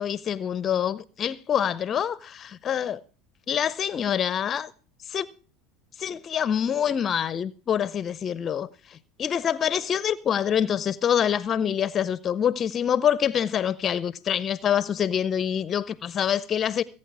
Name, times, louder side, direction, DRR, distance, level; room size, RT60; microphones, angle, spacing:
voice 1, 0.0-3.0 3.5-4.7 5.1-5.3 6.0-16.8, left 9 dB, 35° left, 0.6 m, -26 dB
19.5 x 8.6 x 4.6 m
supercardioid pair, 100°, 0 cm